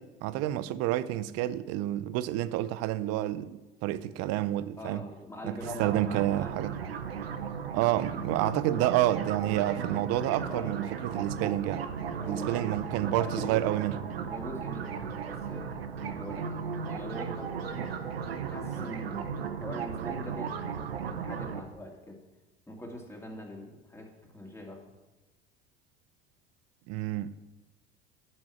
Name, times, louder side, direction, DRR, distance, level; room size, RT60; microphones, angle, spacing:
voice 1, 0.0-5.1 5.4-6.8 7.7-11.8 12.2-14.0 17.8-17.9 26.9-27.3, right 14 dB, 55° right, 0.6 m, -29 dB
voice 2, 4.8-6.7 10.3-10.8 12.2-12.7 13.0-13.6 14.2-17.9 18.5-20.7 21.0-22.2 22.7-24.8, left 1 dB, 10° left, 2.6 m, -43 dB
sound 1, 5.6-21.6, right 6 dB, 85° right, 0.8 m, -36 dB
11.0 x 6.1 x 7.2 m
hypercardioid pair, 70°, 29 cm